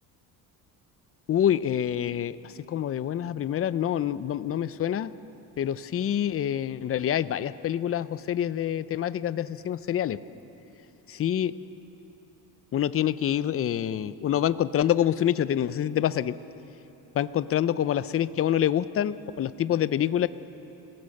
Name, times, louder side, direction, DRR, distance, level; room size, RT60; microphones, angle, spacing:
voice 1, 1.3-2.4 2.7-5.1 5.6-10.2 11.1-11.5 12.7-16.3 17.1-20.3, left 10 dB, 35° left, 15 dB, 0.6 m, -26 dB
30.0 x 19.0 x 6.6 m, 2.9 s
cardioid pair, 135°, 38 cm